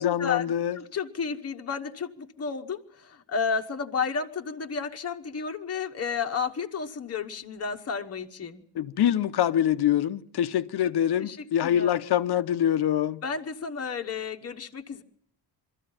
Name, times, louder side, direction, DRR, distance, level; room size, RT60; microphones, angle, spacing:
voice 1, 0.0-0.8 8.7-13.2, left 10 dB, 60° left, 0.9 m, -25 dB
voice 2, 0.7-8.6 11.2-11.4 11.6-11.9 13.2-15.0, left 5 dB, 35° left, 1.2 m, -32 dB
22.5 x 14.0 x 8.8 m
cardioid pair, 120°, 44 cm